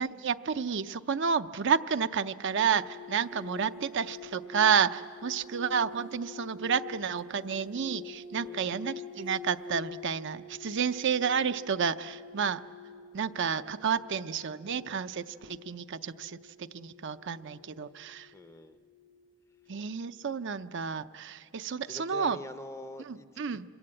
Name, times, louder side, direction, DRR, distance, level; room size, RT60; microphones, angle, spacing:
voice 1, 0.0-12.6 13.1-18.3 19.7-22.4 23.1-23.6, right 6 dB, 55° right, 10 dB, 0.6 m, -30 dB
sound 1, 2.6-19.9 20.1-20.5, left 4 dB, 40° left, 1.0 m, -47 dB
voice 2, 8.3-8.8 18.3-18.8 21.9-23.6, left 1 dB, 15° left, 11 dB, 0.6 m, -45 dB
27.5 x 21.0 x 8.8 m, 2.3 s
head